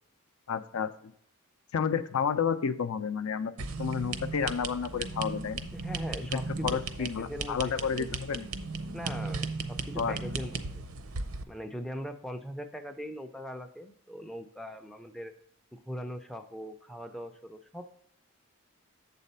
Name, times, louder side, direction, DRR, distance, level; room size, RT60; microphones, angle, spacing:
voice 1, 0.5-1.1 1.7-3.5 3.8-5.7 6.3-8.5 10.0-10.2, left 6 dB, 70° left, 12 dB, 0.4 m, -31 dB
sound 1, 3.6-11.4, right 4 dB, 70° right, 0.6 m, -36 dB
voice 2, 5.7-8.2 8.9-10.8 11.5-15.3 15.7-17.9, equal, ahead, 5 dB, 0.3 m, -41 dB
7.3 x 4.1 x 5.5 m, 0.69 s
head